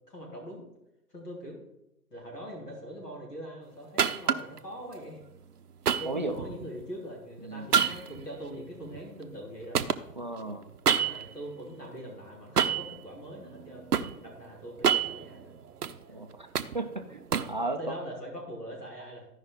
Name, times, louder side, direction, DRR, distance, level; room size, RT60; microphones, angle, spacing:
voice 1, 0.1-0.6 1.1-1.6 2.1-5.2 6.0-9.8 10.9-13.9 14.2-15.5 17.8-19.3, equal, 80° left, -2 dB, 3.9 m, -42 dB
sound 1, 4.0-4.6 5.9-6.8 7.7-9.5 9.7-11.4 12.6-13.0 13.5-14.1 14.7-16.0 16.3-17.6, right 7 dB, 75° right, 0.7 m, -28 dB
voice 2, 6.1-6.4 7.4-7.7 10.2-10.6 16.1-16.5 16.7-17.2 17.5-17.9, right 2 dB, 30° right, 4 dB, 0.4 m, -34 dB
14.0 x 5.4 x 3.9 m, 0.89 s
figure-of-eight pair, 135°, 47 cm